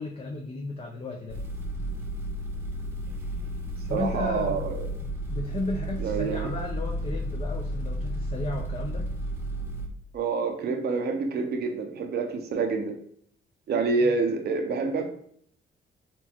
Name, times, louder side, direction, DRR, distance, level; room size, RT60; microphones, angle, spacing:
voice 1, 0.0-1.4 3.9-4.7 5.0-9.1 14.0-14.1, left 3 dB, 30° left, 0 dB, 0.6 m, -34 dB
sound 1, 1.3-9.9, right 1 dB, 10° right, 0.9 m, -32 dB
voice 2, 3.9-4.8 6.0-6.5 10.1-12.9 13.7-15.1, right 4 dB, 55° right, 4 dB, 0.7 m, -27 dB
4.3 x 3.0 x 2.9 m, 0.63 s
cardioid pair, 90°, 20 cm